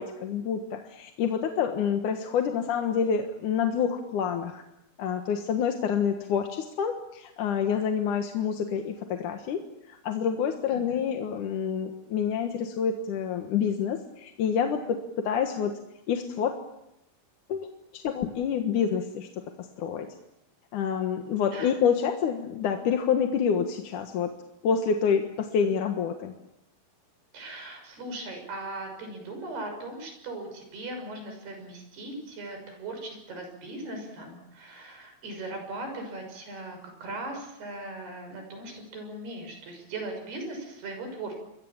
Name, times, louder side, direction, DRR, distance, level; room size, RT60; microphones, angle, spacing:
voice 1, 0.0-4.6 5.0-9.6 9.9-15.7 16.1-16.5 17.5-17.7 17.9-19.3 19.8-20.1 20.7-24.3 24.6-26.3, left 7 dB, 60° left, 4 dB, 2.6 m, -27 dB
voice 2, 27.3-41.4, right 2 dB, 80° right, 5 dB, 8.3 m, -39 dB
28.5 x 22.5 x 7.4 m, 0.84 s
omnidirectional pair, 4.5 m